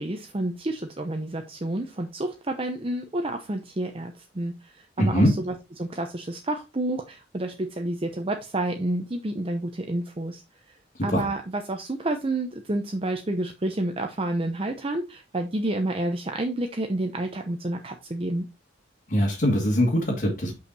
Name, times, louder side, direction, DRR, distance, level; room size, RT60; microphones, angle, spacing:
voice 1, 0.0-10.4 11.0-18.5, right 1 dB, 30° right, 5 dB, 0.7 m, -29 dB
voice 2, 5.0-5.3 11.1-11.2 19.1-20.5, equal, 50° left, -4 dB, 2.3 m, -22 dB
6.5 x 5.6 x 4.1 m, 0.25 s
head